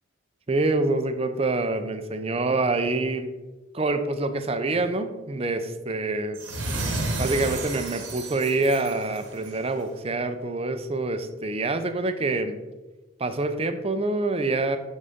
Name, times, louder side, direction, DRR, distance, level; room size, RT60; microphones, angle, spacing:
voice 1, 0.5-3.3 3.7-6.4 7.2-12.6 13.2-14.8, right 2 dB, 30° right, 8 dB, 0.6 m, -26 dB
sound 1, 6.3-9.7, right 2 dB, 75° right, 1.3 m, -31 dB
12.0 x 4.1 x 3.6 m, 1.1 s
head